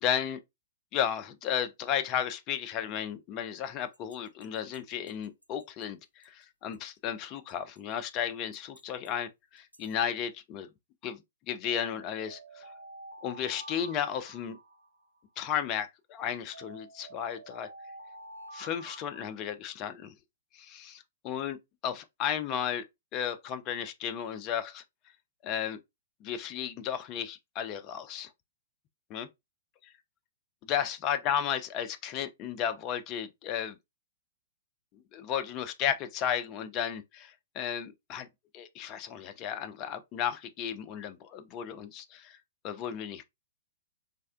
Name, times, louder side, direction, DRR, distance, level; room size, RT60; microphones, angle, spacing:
voice 1, 0.0-0.4 0.9-10.7 11.0-11.2 11.5-12.6 13.2-14.6 15.4-17.7 18.5-20.1 20.5-21.6 21.8-22.8 23.1-24.8 25.4-25.8 26.2-28.3 29.1-29.3 30.6-33.8 35.1-38.3 38.5-42.4 42.6-43.2, left 9 dB, 30° left, 0.4 m, -34 dB
sound 1, 3.9-5.8 6.2-6.3 6.7-6.8 7.5-7.9 8.5-9.1 9.6-9.9 11.7-15.4 16.5-19.2, right 2 dB, 85° right, 0.4 m, -49 dB
3.4 x 2.1 x 2.4 m
figure-of-eight pair, 110°, 0 cm